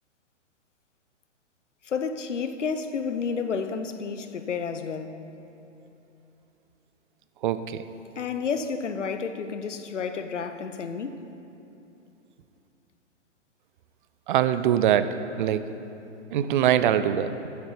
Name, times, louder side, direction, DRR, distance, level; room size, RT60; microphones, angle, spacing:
voice 1, 1.8-5.2 8.2-11.2, left 5 dB, 80° left, 0.9 m, -31 dB
voice 2, 7.4-7.8 14.3-15.6 16.3-17.5, right 10 dB, 45° right, 0.5 m, -23 dB
12.0 x 8.0 x 5.1 m
hypercardioid pair, 120°, 36 cm